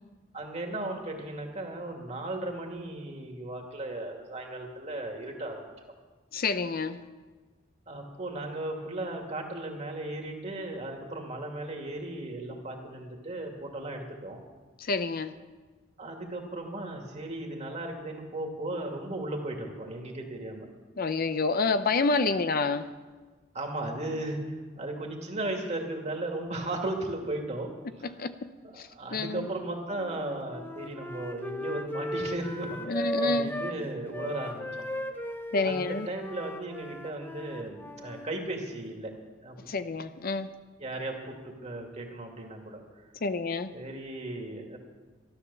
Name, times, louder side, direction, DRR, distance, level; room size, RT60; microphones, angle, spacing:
voice 1, 0.3-5.7 7.9-14.4 16.0-20.7 22.2-22.3 23.5-28.1 28.6-34.9 35.5-39.1 39.4-39.6 40.8-42.8 43.7-44.8, right 2 dB, 35° right, 2 dB, 2.3 m, -36 dB
voice 2, 6.3-7.0 14.8-15.3 21.0-22.9 28.0-28.5 28.8-29.5 32.9-33.5 35.5-36.1 39.7-40.5 43.2-43.7, left 3 dB, 50° left, 10 dB, 0.6 m, -28 dB
Wind instrument woodwind instrument, 29.9-33.8 34.1-38.4, equal, 10° left, 0.7 m, -36 dB
13.5 x 12.0 x 7.0 m, 1.3 s
head